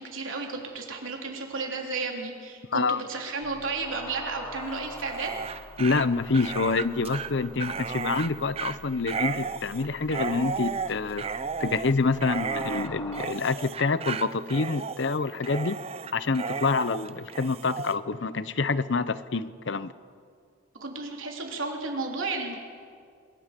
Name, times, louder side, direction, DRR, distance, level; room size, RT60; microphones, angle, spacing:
voice 1, 0.0-5.3 20.8-22.5, right 3 dB, 90° right, 1 dB, 3.4 m, -33 dB
voice 2, 2.7-3.0 5.8-15.8 16.1-19.9, left 4 dB, 65° left, 15 dB, 0.7 m, -27 dB
sound 1, 3.4-13.3, left 2 dB, 15° left, 1.3 m, -46 dB
Dog, 4.9-18.0, right 5 dB, 30° right, 0.5 m, -34 dB
26.5 x 21.5 x 5.2 m, 2.2 s
head